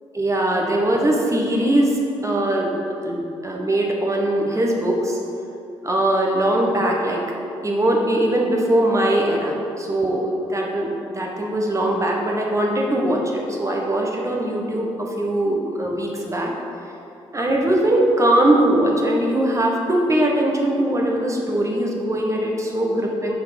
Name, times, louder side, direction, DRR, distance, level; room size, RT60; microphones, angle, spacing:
voice 1, 0.1-2.7 3.0-5.2 5.8-7.2 7.6-16.5 17.3-23.3, right 1 dB, 25° right, -1 dB, 1.3 m, -21 dB
5.8 x 4.8 x 5.2 m, 2.7 s
hypercardioid pair, 45°, 12 cm